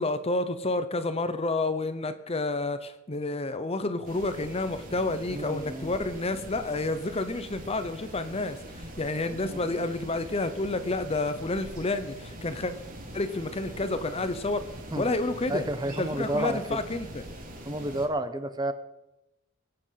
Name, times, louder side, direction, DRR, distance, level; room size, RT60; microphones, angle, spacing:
voice 1, 0.0-12.7 13.1-14.6 15.0-15.6 16.0-17.2, left 2 dB, 30° left, 10 dB, 0.8 m, -30 dB
sound 1, 4.0-18.1, right 1 dB, 40° right, 2.7 m, -43 dB
voice 2, 5.3-5.9 9.3-9.7 14.9-15.1 15.5-16.8 17.6-18.7, right 1 dB, 20° right, 10 dB, 1.0 m, -31 dB
21.5 x 8.9 x 5.8 m, 0.95 s
head